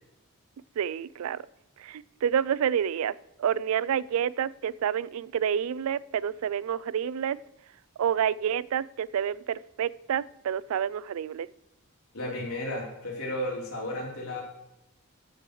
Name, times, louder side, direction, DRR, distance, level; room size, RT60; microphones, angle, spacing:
voice 1, 0.8-1.4 1.8-3.1 3.4-7.4 8.0-11.5, right 8 dB, 75° right, 21 dB, 0.3 m, -28 dB
voice 2, 12.1-14.4, left 1 dB, 80° left, -3 dB, 3.7 m, -33 dB
13.5 x 7.6 x 3.2 m, 0.88 s
head